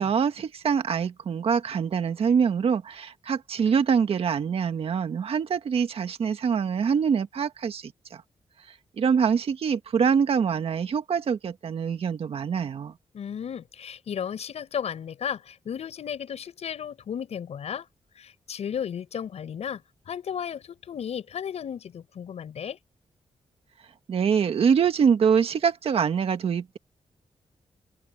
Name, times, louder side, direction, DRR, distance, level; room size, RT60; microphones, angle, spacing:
voice 1, 0.0-8.2 9.0-12.9 24.1-26.8, right 6 dB, 60° right, 1.7 m, -24 dB
voice 2, 13.1-17.9 18.2-22.8, left 8 dB, 75° left, 7.6 m, -34 dB
open air
wide cardioid pair, 170°, 11 cm